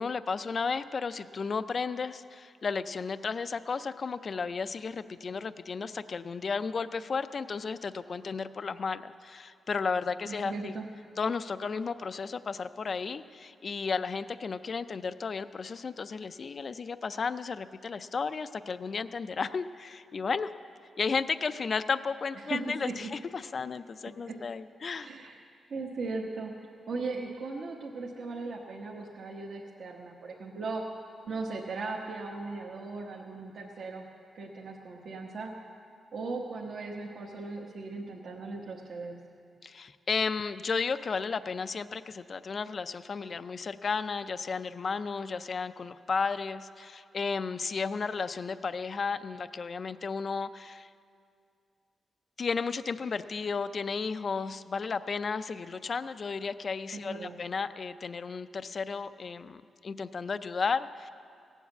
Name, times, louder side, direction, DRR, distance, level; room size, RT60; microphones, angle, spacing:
voice 1, 0.0-10.7 11.2-20.5 21.0-25.1 39.6-50.9 52.4-61.1, left 5 dB, 40° left, 13 dB, 0.4 m, -33 dB
voice 2, 10.3-10.8 22.4-23.0 24.2-24.4 25.0-25.4 25.7-30.8 31.3-34.0 34.3-35.5 36.1-39.2 56.9-57.4, right 3 dB, 60° right, -2 dB, 1.1 m, -38 dB
17.5 x 7.2 x 8.1 m, 2.4 s
wide cardioid pair, 160°, 0 cm